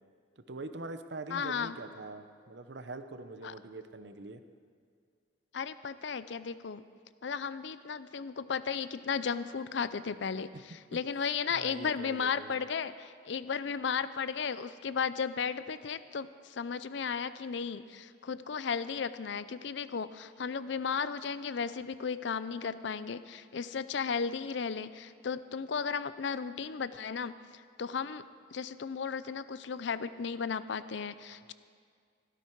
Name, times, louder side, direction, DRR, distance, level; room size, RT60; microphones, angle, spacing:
voice 1, 0.4-4.4 11.5-12.6 31.5-31.6, right 2 dB, 60° right, 9 dB, 0.7 m, -43 dB
voice 2, 1.3-1.8 3.4-3.5 5.5-6.8 7.2-27.3 27.8-28.2 28.5-31.5, left 6 dB, 65° left, 14 dB, 0.5 m, -35 dB
16.0 x 13.0 x 4.6 m, 2.1 s
head